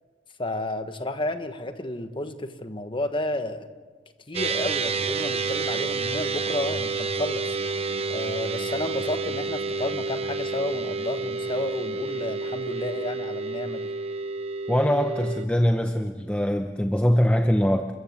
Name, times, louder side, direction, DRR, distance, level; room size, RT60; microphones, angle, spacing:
voice 1, 0.4-3.7 4.3-7.6 8.1-13.9, left 1 dB, 25° left, 1.4 m, -31 dB
sound 1, 4.3-15.5, right 4 dB, 35° right, 0.9 m, -29 dB
voice 2, 14.7-17.9, equal, 5° left, 0.8 m, -22 dB
29.5 x 14.5 x 8.1 m
head